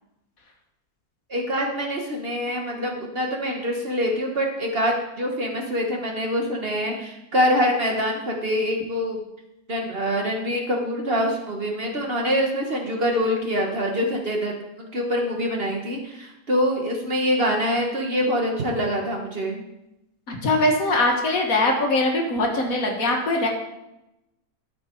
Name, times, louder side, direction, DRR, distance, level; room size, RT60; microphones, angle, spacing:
voice 1, 1.3-9.2 9.7-19.6, equal, 40° right, 1 dB, 1.3 m, -25 dB
voice 2, 20.3-23.5, left 2 dB, 60° left, 1 dB, 1.9 m, -22 dB
13.0 x 6.0 x 4.5 m, 0.91 s
omnidirectional pair, 1.7 m